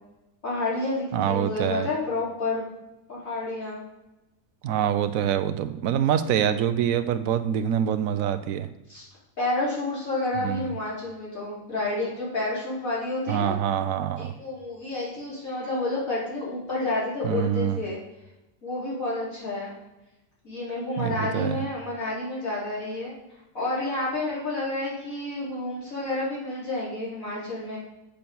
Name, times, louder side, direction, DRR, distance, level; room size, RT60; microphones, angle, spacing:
voice 1, 0.4-2.7 3.1-3.8 8.9-9.1 9.4-13.6 14.2-18.0 18.6-19.7 20.4-23.1 23.5-27.8, left 2 dB, 80° left, -8 dB, 4.8 m, -30 dB
voice 2, 1.1-1.9 4.6-8.7 10.4-10.7 13.3-14.3 17.2-17.8 21.0-21.6, right 9 dB, 85° right, 11 dB, 1.1 m, -25 dB
7.6 x 6.9 x 6.9 m, 0.97 s
omnidirectional pair, 1.4 m